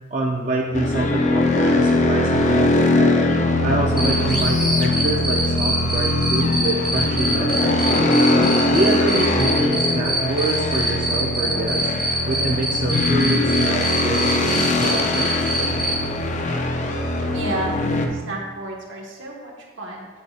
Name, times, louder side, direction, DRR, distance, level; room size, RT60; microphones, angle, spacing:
voice 1, 0.1-3.3 3.6-8.2 8.7-11.9 12.3-15.3, right 2 dB, 40° right, -1 dB, 0.5 m, -26 dB
sound 1, 0.7-18.1, left 2 dB, 35° left, 0.5 m, -21 dB
Cricket, 4.0-15.9, right 1 dB, ahead, 1.3 m, -24 dB
voice 2, 17.3-20.1, right 1 dB, 75° right, -1 dB, 1.3 m, -31 dB
8.7 x 6.3 x 2.4 m, 1.4 s
head